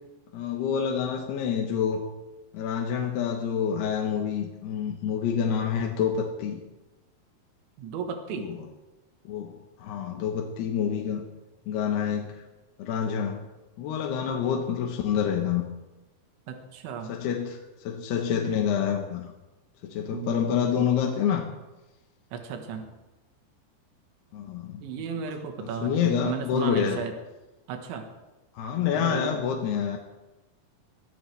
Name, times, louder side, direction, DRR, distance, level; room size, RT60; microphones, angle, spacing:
voice 1, 0.3-2.0 2.5-6.6 8.3-8.6 9.2-11.3 11.7-12.4 12.8-13.5 13.8-15.7 17.1-19.3 19.8-21.5 24.3-24.8 25.4-27.0 28.5-30.0, left 8 dB, 70° left, 1 dB, 3.0 m, -27 dB
voice 2, 7.8-8.5 16.5-17.1 20.1-20.8 22.3-22.9 24.8-27.2 27.7-28.1 28.9-29.4, right 6 dB, 80° right, 4 dB, 3.8 m, -34 dB
23.0 x 16.0 x 3.4 m, 1.1 s
omnidirectional pair, 5.2 m